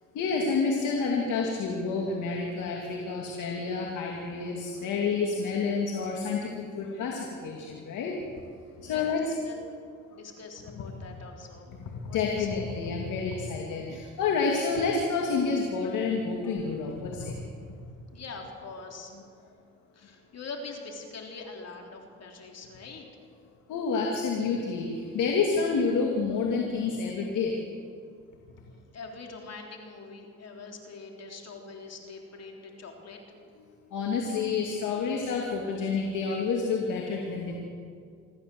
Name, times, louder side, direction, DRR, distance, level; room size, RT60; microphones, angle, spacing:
voice 1, 0.1-8.2 8.8-9.2 10.7-10.9 12.1-17.3 23.7-27.5 33.9-37.6, left 4 dB, 80° left, 0 dB, 2.6 m, -29 dB
voice 2, 8.8-9.6 10.1-11.7 12.1-12.6 18.1-19.2 19.9-23.0 28.6-33.2, left 3 dB, 55° left, 2 dB, 3.5 m, -43 dB
26.0 x 14.5 x 7.8 m, 2.2 s
cardioid pair, 90°, 30 cm